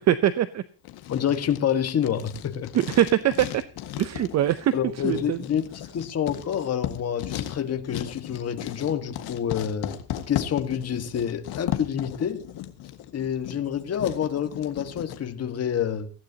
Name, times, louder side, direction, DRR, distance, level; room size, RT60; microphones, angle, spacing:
voice 1, 0.1-0.6 2.7-3.6 4.0-4.7 5.0-5.4, right 11 dB, 45° right, 0.7 m, -22 dB
Writing, 0.8-15.2, left 12 dB, 75° left, 1.8 m, -36 dB
voice 2, 1.1-2.7 4.7-10.0 10.3-12.5 13.1-16.1, left 9 dB, 40° left, 1.6 m, -28 dB
19.0 x 16.0 x 2.8 m
cardioid pair, 160°, 39 cm